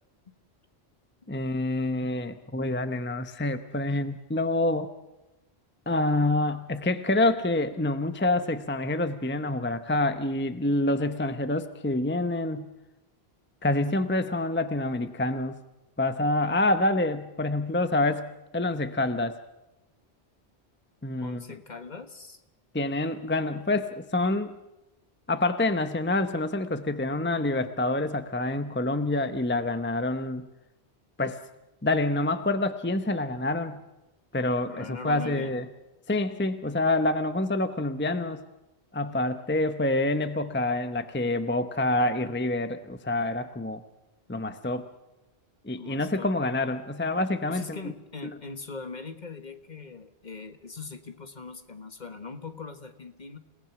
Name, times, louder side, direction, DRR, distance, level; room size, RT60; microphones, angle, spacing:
voice 1, 1.3-4.9 5.9-12.7 13.6-15.6 16.0-19.4 21.0-21.4 22.7-24.6 25.3-30.5 31.2-31.4 31.8-33.8 34.3-35.7 36.1-38.4 38.9-43.8 44.3-44.9 45.6-47.8, left 2 dB, 10° left, 10 dB, 0.9 m, -27 dB
voice 2, 21.2-22.4 34.7-35.5 45.7-46.3 47.5-53.4, left 4 dB, 45° left, 8 dB, 1.6 m, -41 dB
29.5 x 18.5 x 6.1 m, 0.97 s
omnidirectional pair, 1.1 m